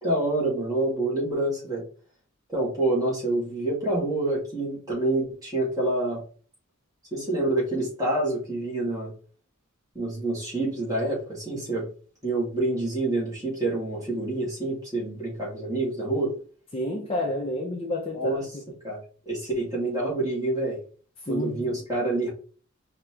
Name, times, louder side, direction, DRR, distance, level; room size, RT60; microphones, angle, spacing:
voice 1, 0.0-1.8 2.5-6.2 7.1-9.1 9.9-11.9 12.2-16.3 18.1-18.6 18.8-19.0 19.3-20.8 21.3-22.3, right 2 dB, 20° right, 2.4 m, -27 dB
voice 2, 16.7-18.3 21.3-21.7, left 1 dB, 25° left, 0.7 m, -29 dB
4.9 x 3.0 x 3.3 m
head